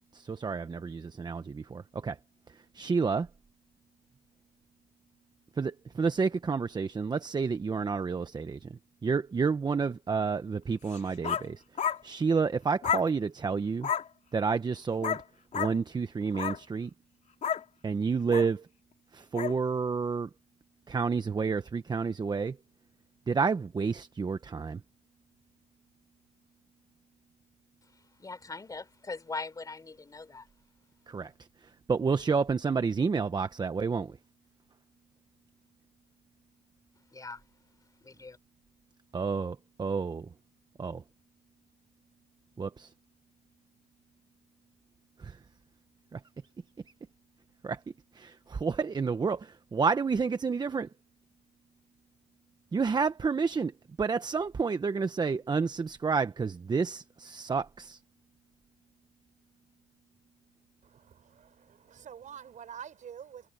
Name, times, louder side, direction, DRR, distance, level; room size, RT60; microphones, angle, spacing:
voice 1, 0.0-2.2 2.5-3.3 5.5-13.9 14.3-15.2 15.5-16.9 17.8-18.7 19.1-20.3 20.9-22.6 23.3-24.8 31.1-31.3 31.6-34.2 39.1-40.3 40.8-41.0 42.6-42.9 45.2-45.4 46.1-46.2 47.6-50.9 52.7-53.7 54.0-58.0, right 5 dB, 25° right, 1.1 m, -30 dB
sound 1, 10.9-11.5 11.8-12.0 12.8-13.1 13.8-14.1 15.0-15.2 15.5-15.7 16.3-16.6 17.4-17.6 18.3-18.5 19.3-19.6, left 8 dB, 45° left, 3.2 m, -30 dB
voice 2, 28.2-30.5 37.1-37.4 38.0-38.4, left 3 dB, 20° left, 3.9 m, -41 dB
voice 3, 60.8-63.5, right 8 dB, 50° right, 6.1 m, -47 dB
cardioid pair, 110°, 17 cm